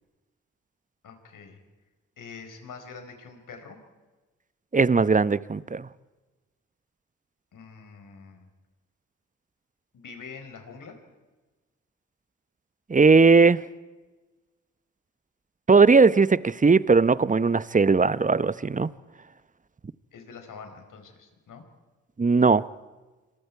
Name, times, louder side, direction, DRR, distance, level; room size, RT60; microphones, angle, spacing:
voice 1, 1.0-1.6 2.2-3.8 7.5-8.5 9.9-11.0 20.1-21.6, left 5 dB, 60° left, 5.0 m, -45 dB
voice 2, 4.7-5.9 12.9-13.6 15.7-18.9 22.2-22.6, right 4 dB, 20° right, 0.9 m, -18 dB
27.0 x 25.5 x 4.8 m
hypercardioid pair, 40°, 35 cm